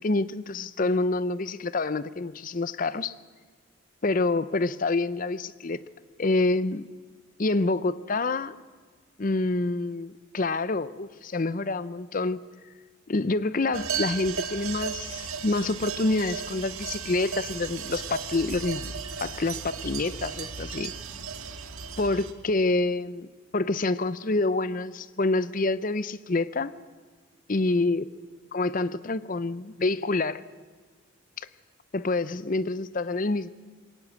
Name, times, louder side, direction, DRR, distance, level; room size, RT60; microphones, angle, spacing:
voice 1, 0.0-3.1 4.0-5.8 6.2-6.9 7.4-8.5 9.2-12.4 13.1-18.9 19.2-20.9 22.0-23.3 23.5-26.7 27.5-28.1 28.5-30.4 31.4-31.5 31.9-33.5, left 2 dB, 40° left, 16 dB, 0.6 m, -27 dB
sound 1, 13.7-22.3, right 6 dB, 85° right, 1.8 m, -35 dB
20.5 x 18.0 x 8.5 m, 1.4 s
head